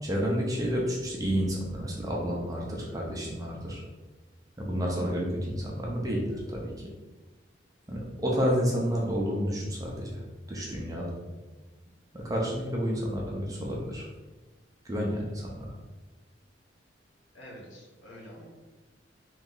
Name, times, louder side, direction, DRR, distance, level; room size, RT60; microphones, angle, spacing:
voice 1, 0.0-3.8 4.6-6.7 7.9-10.2 10.5-11.2 12.1-14.1 14.8-15.7, equal, 20° right, -2 dB, 0.6 m, -30 dB
voice 2, 17.3-18.5, equal, 70° left, -2 dB, 1.1 m, -47 dB
3.1 x 3.0 x 3.8 m, 1.2 s
head